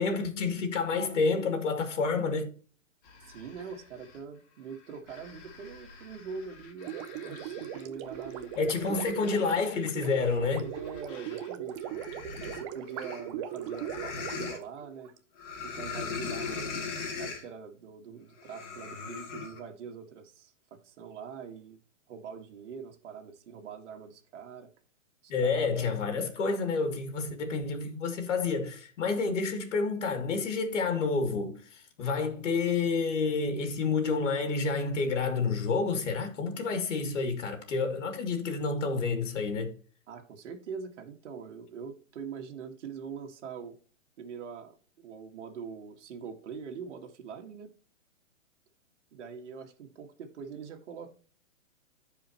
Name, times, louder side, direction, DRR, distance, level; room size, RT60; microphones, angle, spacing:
voice 1, 0.0-2.5 8.6-10.6 25.3-39.7, left 4 dB, 65° left, 2.6 m, -29 dB
sound 1, 3.1-4.2 4.7-11.5 11.8-14.6 15.4-17.5 18.4-19.6, left 4 dB, 40° left, 2.5 m, -41 dB
voice 2, 3.3-8.5 8.9-9.0 10.6-12.1 12.4-15.1 15.6-16.7 17.2-21.8 22.1-24.7 25.2-25.9 40.1-43.8 44.2-47.7 49.1-51.1, right 6 dB, 60° right, 1.9 m, -43 dB
Gurgling, 6.8-15.2, right 10 dB, 25° right, 0.6 m, -39 dB
14.5 x 5.0 x 3.0 m
hypercardioid pair, 145°, 39 cm